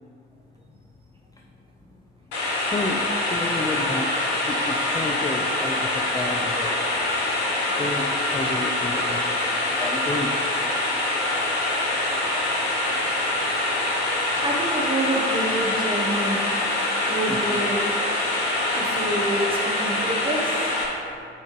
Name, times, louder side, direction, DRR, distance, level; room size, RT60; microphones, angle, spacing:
sound 1, 2.3-20.8, left 2 dB, 80° left, 1.0 m, -25 dB
voice 1, 2.6-4.1 4.4-6.8 7.8-9.2 9.8-10.4 17.3-17.6, left 2 dB, 10° left, 1 dB, 0.4 m, -31 dB
voice 2, 14.0-16.4 17.1-17.8 18.7-20.6, right 1 dB, 15° right, -3 dB, 1.4 m, -27 dB
8.2 x 4.1 x 3.3 m, 2.4 s
figure-of-eight pair, 45°, 32 cm